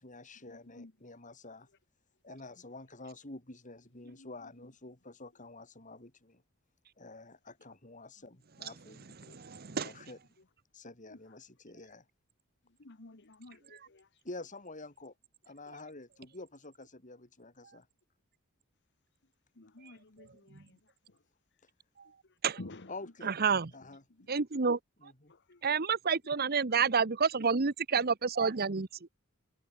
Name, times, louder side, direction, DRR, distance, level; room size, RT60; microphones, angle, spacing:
voice 1, 0.0-1.7 2.2-6.4 7.0-9.1 9.5-10.2 10.7-12.1 14.2-15.1 15.4-17.9 21.6-21.7 22.9-23.3 23.7-24.4 25.0-25.3, left 2 dB, 35° left, 4.5 m, -48 dB
voice 2, 9.3-9.9 22.4-22.6 23.2-23.7 24.3-24.8 25.6-28.9, right 5 dB, 45° right, 0.9 m, -29 dB
voice 3, 12.8-14.1 19.6-20.6 22.6-22.9 25.5-25.6, left 2 dB, 55° left, 1.4 m, -50 dB
head